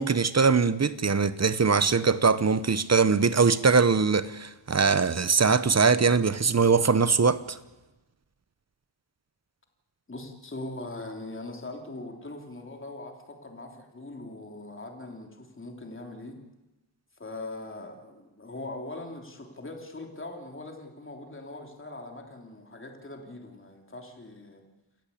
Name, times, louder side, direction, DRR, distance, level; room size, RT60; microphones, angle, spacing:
voice 1, 0.0-7.6, right 5 dB, 35° right, 0.9 m, -22 dB
voice 2, 10.1-16.4 17.2-24.6, left 2 dB, 25° left, 3.3 m, -41 dB
28.5 x 14.5 x 8.5 m
wide cardioid pair, 130°, 45 cm